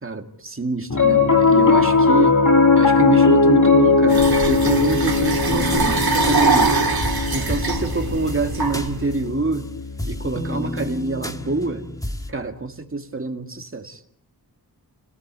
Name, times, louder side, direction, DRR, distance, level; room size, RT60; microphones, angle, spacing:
voice 1, 0.0-2.4 2.8-6.8 7.3-9.7 10.1-11.9 12.3-14.0, right 3 dB, 35° right, 2.3 m, -26 dB
Piano, 0.9-11.4, left 4 dB, 50° left, 2.2 m, -19 dB
sound 1, 4.1-9.2, right 3 dB, 70° right, 2.7 m, -23 dB
sound 2, 5.4-9.6 10.0-12.3, left 1 dB, 10° left, 1.8 m, -32 dB
30.0 x 17.5 x 8.2 m
wide cardioid pair, 75°, 38 cm